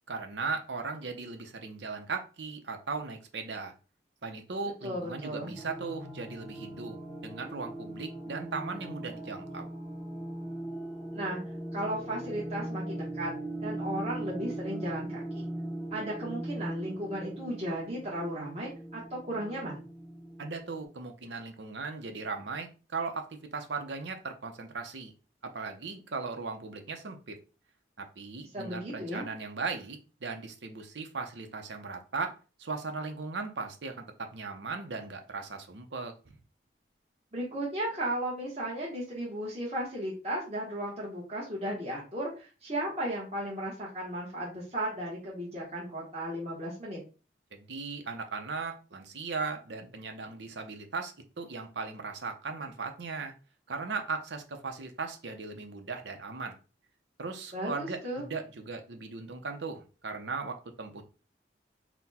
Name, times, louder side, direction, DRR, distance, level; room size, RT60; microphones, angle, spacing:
voice 1, 0.1-3.7 4.2-7.0 7.2-9.7 20.4-25.1 25.4-27.4 28.0-36.4 47.5-53.3 53.7-56.6 57.2-61.0, right 4 dB, 90° right, 5 dB, 0.8 m, -38 dB
voice 2, 4.8-5.5 11.1-11.4 11.7-13.3 13.6-15.4 15.9-19.8 28.5-29.3 37.3-47.0 57.5-58.3, right 1 dB, 35° right, -6 dB, 1.2 m, -35 dB
sound 1, 5.6-20.8, right 1 dB, ahead, 0.7 m, -40 dB
4.1 x 2.2 x 4.2 m, 0.35 s
head